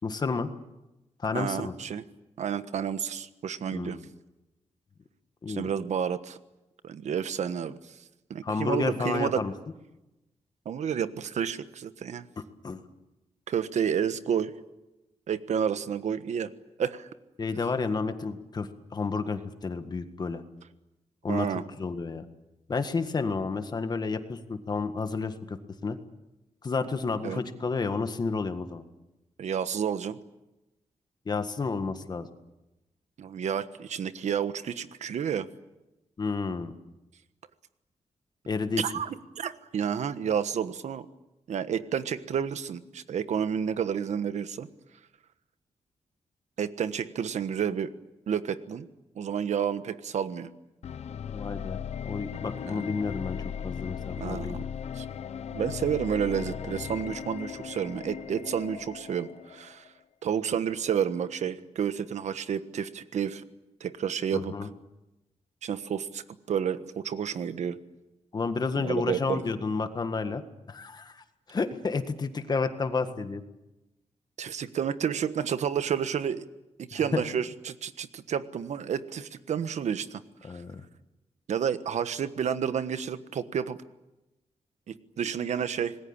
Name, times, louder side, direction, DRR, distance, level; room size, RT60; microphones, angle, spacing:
voice 1, 0.0-0.5 1.2-1.7 3.7-4.0 5.4-5.7 8.4-9.5 12.6-12.8 17.4-20.4 21.2-22.2 22.7-26.0 26.6-28.8 31.3-32.3 36.2-36.7 38.5-38.8 51.3-54.6 64.3-64.7 68.3-70.4 70.7-73.4 76.9-77.2 80.4-80.8, left 4 dB, 35° left, 8 dB, 1.7 m, -31 dB
voice 2, 1.3-2.0 2.4-4.0 5.5-6.4 6.8-8.0 8.3-9.4 10.6-12.2 13.5-14.5 15.3-16.5 16.8-17.1 21.3-21.6 27.2-27.4 29.4-30.2 33.2-35.5 38.8-41.1 41.5-44.7 46.6-47.9 48.3-48.9 49.1-50.5 52.6-52.8 54.1-54.6 54.9-55.0 55.5-59.9 60.2-63.4 63.8-64.5 65.6-66.2 66.5-67.8 68.8-69.4 74.4-76.5 76.8-80.2 81.5-83.8 84.9-86.0, right 8 dB, 80° right, 12 dB, 1.3 m, -30 dB
sound 1, 50.8-59.9, left 8 dB, 65° left, 0.9 m, -37 dB
27.0 x 20.5 x 8.8 m, 0.99 s
wide cardioid pair, 160°, 12 cm